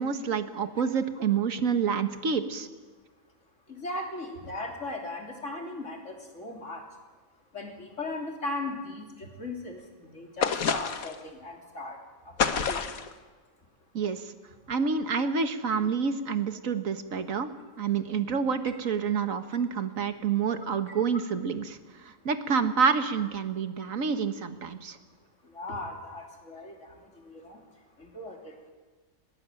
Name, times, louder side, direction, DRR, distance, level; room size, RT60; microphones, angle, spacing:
voice 1, 0.0-2.7 13.9-14.2 14.7-17.5 17.8-21.8 22.2-25.0, right 6 dB, 70° right, 9 dB, 1.7 m, -28 dB
voice 2, 3.7-6.9 7.5-12.0 12.2-12.8 20.5-20.6 25.4-27.6 28.0-28.7, left 2 dB, 60° left, 2 dB, 3.6 m, -38 dB
sound 1, 10.4-11.2 12.4-13.1, left 6 dB, 90° left, 1.6 m, -28 dB
20.0 x 19.0 x 9.0 m, 1.3 s
omnidirectional pair, 1.4 m